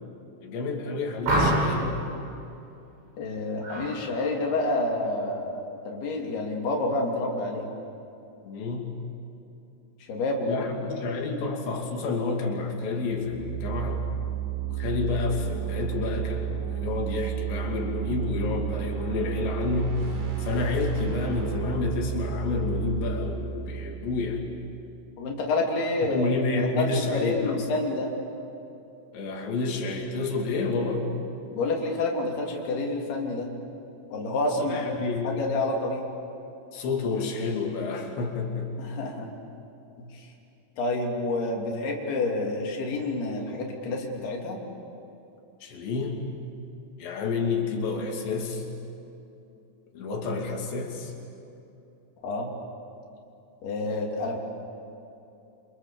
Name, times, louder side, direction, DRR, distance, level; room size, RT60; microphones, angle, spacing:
voice 1, 0.4-1.9 8.4-8.9 10.5-14.0 14.8-16.5 16.8-20.1 20.4-24.4 26.1-27.7 29.1-31.1 34.6-35.4 36.7-38.9 45.6-46.3 47.0-48.7 49.9-51.1, left 4 dB, 85° left, 1 dB, 5.0 m, -29 dB
sound 1, 1.2-1.9 3.6-3.9 4.3-4.7, right 1 dB, 80° right, 9.4 m, -25 dB
voice 2, 3.2-7.7 10.1-11.0 25.2-26.3 26.6-28.1 31.5-33.5 34.1-36.0 38.8-39.3 40.0-40.3 40.8-44.6 52.2-52.5 53.6-54.4, left 2 dB, 65° left, -1 dB, 4.9 m, -28 dB
sound 2, 13.1-24.9, right 11 dB, 60° right, 5.1 m, -32 dB
28.5 x 27.0 x 7.1 m, 2.8 s
omnidirectional pair, 5.0 m